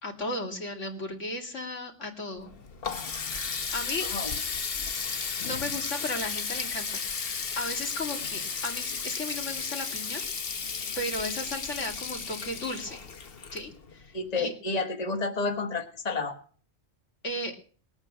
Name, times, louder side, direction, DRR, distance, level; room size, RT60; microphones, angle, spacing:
voice 1, 0.0-2.5 3.7-4.1 5.4-10.2 11.0-13.0 13.5-14.5 17.2-17.6, left 1 dB, 85° left, 2 dB, 2.9 m, -35 dB
Water tap faucet, 2.4-14.1, left 5 dB, 55° left, 1.3 m, -34 dB
voice 2, 4.0-4.3 14.1-16.4, left 3 dB, 35° left, 5 dB, 1.6 m, -30 dB
20.5 x 8.8 x 6.0 m, 0.43 s
omnidirectional pair, 1.2 m